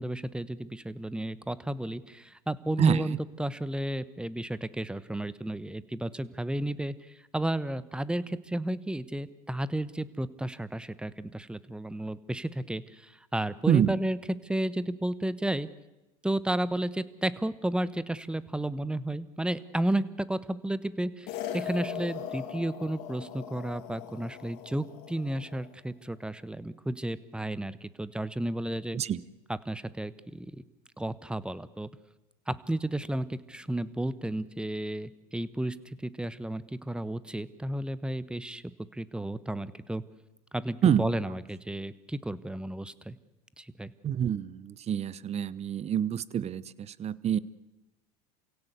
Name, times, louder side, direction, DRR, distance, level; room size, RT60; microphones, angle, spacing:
voice 1, 0.0-6.9 7.3-14.2 14.4-15.7 16.2-20.0 20.3-29.0 29.5-30.5 31.0-31.9 32.5-38.6 38.9-40.0 40.5-43.2 43.6-43.9, right 1 dB, 5° right, 17 dB, 1.2 m, -32 dB
voice 2, 2.8-3.2 13.7-14.0 28.9-29.2 40.8-41.0 44.0-46.6 47.0-47.4, right 9 dB, 35° right, 20 dB, 1.0 m, -26 dB
sound 1, 21.3-25.7, left 9 dB, 65° left, 3.1 m, -40 dB
28.5 x 16.5 x 8.3 m, 1.0 s
hypercardioid pair, 95°, 19 cm